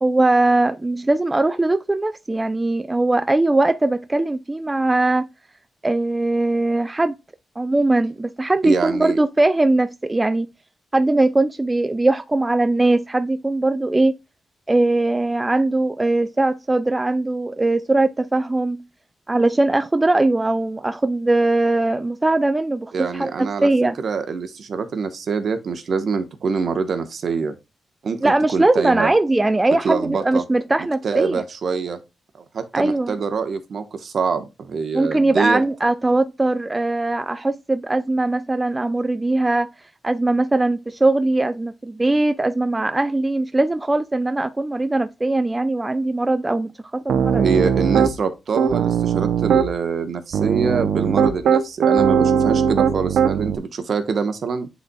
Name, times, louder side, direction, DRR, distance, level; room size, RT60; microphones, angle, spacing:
voice 1, 0.0-5.3 5.8-7.1 7.6-10.5 10.9-14.1 14.7-18.8 19.3-23.9 28.2-31.4 32.7-33.1 34.9-39.7 40.0-47.4, right 2 dB, 20° right, 0.4 m, -20 dB
voice 2, 8.6-9.2 22.9-23.7 24.0-27.6 28.0-29.1 29.8-30.4 31.0-32.0 32.5-35.6 47.3-54.7, right 5 dB, 60° right, 1.1 m, -25 dB
Piano, 47.1-48.1 48.6-49.7 50.3-53.6, right 7 dB, 80° right, 0.6 m, -19 dB
10.5 x 4.1 x 2.3 m
cardioid pair, 95°, 0 cm